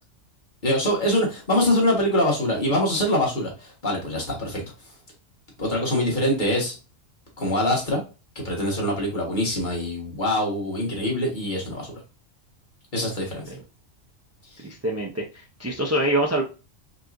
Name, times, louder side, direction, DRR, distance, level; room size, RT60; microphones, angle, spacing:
voice 1, 0.6-4.6 5.6-6.7 7.4-8.0 8.3-11.9 12.9-13.4, left 1 dB, 40° left, -2 dB, 1.5 m, -24 dB
voice 2, 14.6-16.4, right 1 dB, 25° right, -1 dB, 0.3 m, -25 dB
4.7 x 3.0 x 2.5 m, 0.31 s
omnidirectional pair, 1.3 m